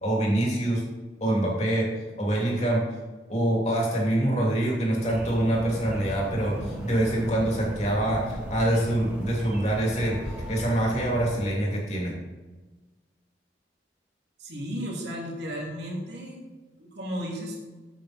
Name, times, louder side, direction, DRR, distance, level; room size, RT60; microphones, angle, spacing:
voice 1, 0.0-0.8 1.2-1.9 2.2-2.8 3.3-10.2 10.5-12.1, right 1 dB, 40° left, -2 dB, 2.8 m, -25 dB
sound 1, 5.0-11.4, right 1 dB, 10° right, 1.8 m, -36 dB
voice 2, 14.4-16.4 16.8-17.6, equal, 70° right, -3 dB, 2.8 m, -34 dB
8.8 x 8.2 x 4.4 m, 1.3 s
head